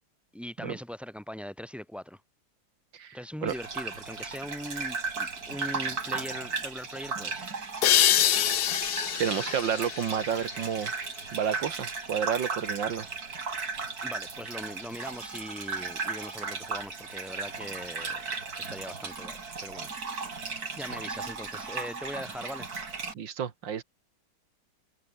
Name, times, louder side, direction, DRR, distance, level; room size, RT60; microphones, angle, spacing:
voice 1, 0.3-2.2 3.1-7.5 14.0-18.3 18.6-19.9 20.3-22.7, equal, ahead, 3.8 m, -41 dB
voice 2, 2.9-3.5 9.2-10.9 11.3-13.1 23.1-23.8, right 8 dB, 90° right, 2.3 m, -30 dB
Gurgling / Bathtub (filling or washing), 3.5-23.1, right 4 dB, 55° right, 3.3 m, -36 dB
sound 1, 7.8-11.2, left 12 dB, 65° left, 1.3 m, -26 dB
omnidirectional pair, 2.0 m